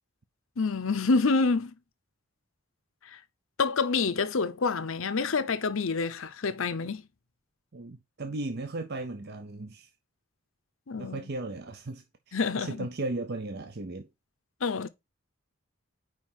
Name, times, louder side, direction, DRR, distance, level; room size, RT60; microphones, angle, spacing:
voice 1, 0.6-1.7 3.0-3.2 3.6-7.0 10.9-11.3 12.3-12.9 14.6-14.9, left 4 dB, 70° left, 0.7 m, -27 dB
voice 2, 7.7-9.9 11.0-14.1, right 2 dB, 50° right, 0.6 m, -36 dB
4.9 x 4.9 x 5.5 m
head